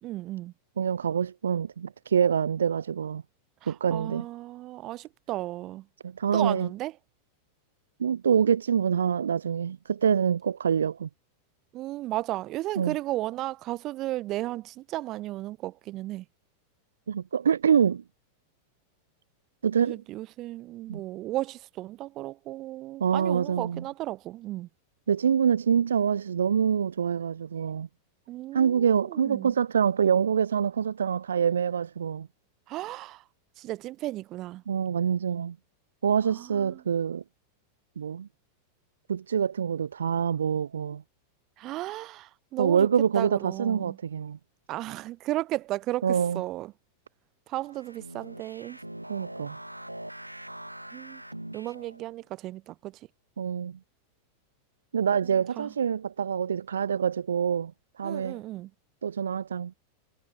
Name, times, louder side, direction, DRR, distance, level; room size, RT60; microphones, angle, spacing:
voice 1, 0.0-0.5 3.6-5.8 6.3-6.9 11.7-16.2 19.8-24.7 28.3-29.5 32.7-33.2 33.6-34.6 36.3-36.8 41.6-42.9 43.1-44.0 44.7-46.1 46.3-46.7 47.5-48.8 50.9-51.2 51.5-53.0 55.6-55.7 58.0-58.7, right 16 dB, 35° right, 2.9 m, -34 dB
voice 2, 0.8-3.2 3.7-4.3 6.0-6.7 8.0-11.1 12.8-12.9 17.1-18.0 19.6-20.0 20.9-21.0 23.0-23.8 25.1-27.9 28.5-32.3 34.7-35.6 36.0-37.2 38.0-38.3 39.1-41.0 42.6-44.4 46.0-46.4 49.1-49.6 53.4-53.8 54.9-57.7 58.0-58.4 59.0-59.7, right 7 dB, 70° right, 1.0 m, -25 dB
sound 1, 47.6-52.1, right 1 dB, 85° right, 4.5 m, -43 dB
figure-of-eight pair, 90°, 0 cm